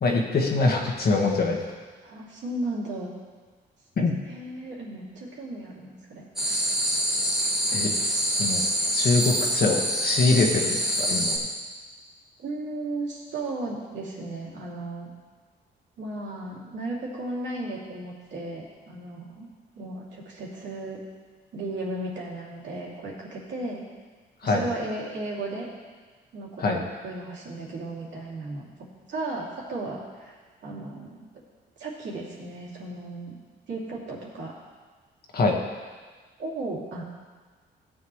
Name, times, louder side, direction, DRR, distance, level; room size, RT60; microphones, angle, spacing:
voice 1, 0.0-1.6 4.0-4.2 7.7-7.9 8.3-8.6 8.9-11.4 24.4-24.6 26.6-26.8 35.3-35.6, left 3 dB, 50° left, 0 dB, 1.6 m, -23 dB
voice 2, 2.0-3.1 4.2-6.2 12.4-15.1 16.0-19.5 19.8-21.0 21.5-23.9 24.4-25.7 26.3-28.7 29.1-31.2 31.8-33.4 33.7-34.5 36.4-37.0, right 2 dB, 65° right, -4 dB, 2.9 m, -35 dB
sound 1, 6.4-11.4, equal, ahead, 2.0 m, -25 dB
15.0 x 7.2 x 3.2 m, 1.4 s
cardioid pair, 90°, 20 cm